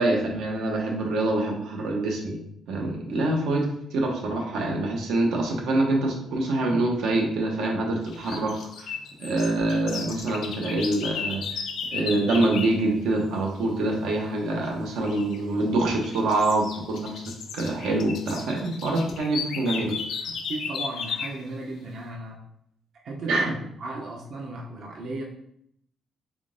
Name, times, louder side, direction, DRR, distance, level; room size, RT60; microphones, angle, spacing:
voice 1, 0.0-2.4 2.7-11.4 11.9-17.2 17.5-19.9 23.3-23.5, right 2 dB, 90° right, 1 dB, 0.8 m, -25 dB
sound 1, 8.1-12.8 15.0-15.4 15.9-21.4, left 6 dB, 65° left, 0.4 m, -35 dB
voice 2, 20.5-22.4 23.0-25.2, right 2 dB, 50° right, -1 dB, 0.5 m, -35 dB
3.6 x 3.5 x 2.5 m, 0.71 s
cardioid pair, 170°, 0 cm